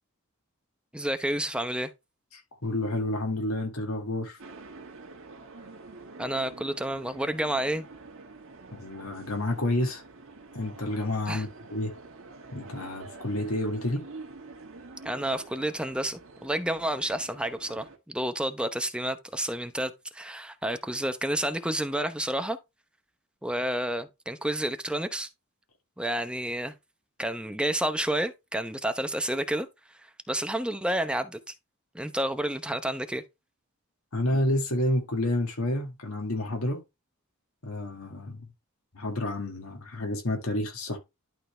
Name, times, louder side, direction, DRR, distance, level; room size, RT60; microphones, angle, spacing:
voice 1, 0.9-1.9 6.2-7.9 11.3-11.4 15.0-22.6 23.4-25.3 26.0-26.7 27.2-29.7 30.3-31.5 31.9-33.2, right 1 dB, 5° right, 0.8 m, -30 dB
voice 2, 2.3-4.4 8.7-10.0 10.5-11.9 12.5-14.0 34.1-36.8 37.6-38.5 38.9-41.0, left 1 dB, 80° left, 1.9 m, -29 dB
sound 1, 4.4-18.0, right 3 dB, 65° right, 1.7 m, -47 dB
11.5 x 4.0 x 3.3 m
head